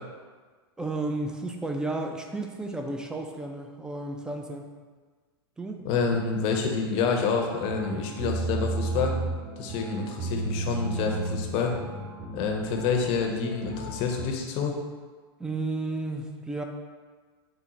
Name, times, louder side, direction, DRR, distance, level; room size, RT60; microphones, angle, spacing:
voice 1, 0.8-4.7 5.6-5.8 15.4-16.6, right 2 dB, 5° right, 3 dB, 0.3 m, -32 dB
voice 2, 5.8-9.2 9.6-11.8 12.3-14.8, left 5 dB, 45° left, 2 dB, 0.6 m, -28 dB
sound 1, 7.3-14.2, right 2 dB, 40° right, 0.9 m, -34 dB
3.9 x 2.1 x 4.0 m, 1.5 s
hypercardioid pair, 110°, 13 cm